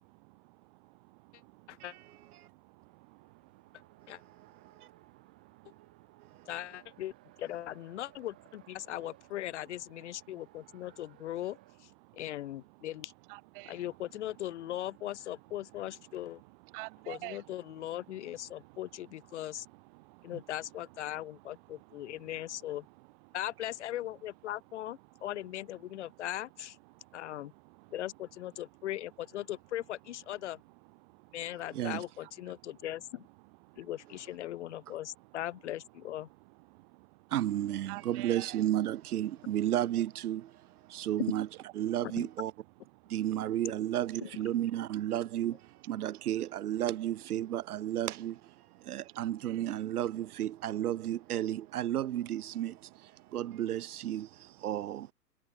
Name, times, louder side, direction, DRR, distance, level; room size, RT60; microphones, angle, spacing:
voice 1, 0.3-1.8 2.4-6.5 12.0-12.2 13.3-13.8 16.6-17.4 18.5-18.7 19.9-20.3 22.0-22.2 26.9-27.4 27.6-27.9 31.0-31.4 33.7-33.9 36.7-37.3 37.9-38.6 40.9-41.0 48.9-49.6 53.2-53.3, right 28 dB, 30° right, 1.1 m, -51 dB
Race car auto racing, 2.6-11.8, right 14 dB, 5° right, 0.3 m, -63 dB
voice 2, 6.5-7.1 7.4-13.1 13.7-16.4 17.1-19.7 20.2-22.9 23.3-26.8 27.1-27.5 27.9-30.6 31.3-33.3 33.8-36.3 42.2-42.3 44.2-44.3, left 13 dB, 45° left, 0.6 m, -39 dB
voice 3, 31.7-32.0 37.3-41.5 41.7-42.5 43.1-48.5 48.8-55.1, right 12 dB, 65° right, 1.3 m, -33 dB
hypercardioid pair, 135°, 49 cm